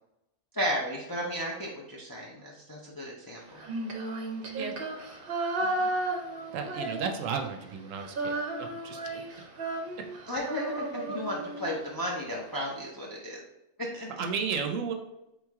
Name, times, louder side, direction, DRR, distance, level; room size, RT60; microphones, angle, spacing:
voice 1, 0.5-3.6 5.6-5.9 10.3-13.4 13.9-14.1, equal, 30° left, -3 dB, 0.4 m, -34 dB
Female singing, 3.5-7.5 7.7-12.0, right 2 dB, 50° right, 0.8 m, -34 dB
voice 2, 6.5-8.3 8.8-9.0 14.2-14.9, right 6 dB, 80° right, 4 dB, 0.9 m, -32 dB
3.7 x 3.1 x 3.5 m, 0.87 s
omnidirectional pair, 1.4 m